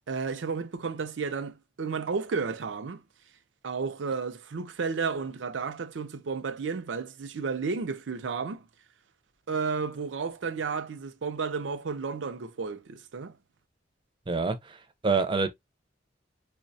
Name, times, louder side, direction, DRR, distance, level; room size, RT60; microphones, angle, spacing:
voice 1, 0.1-3.0 3.6-8.7 9.5-13.4, right 5 dB, 85° right, 0.5 m, -32 dB
voice 2, 14.3-15.5, right 4 dB, 25° right, 0.5 m, -27 dB
4.6 x 2.1 x 2.6 m
head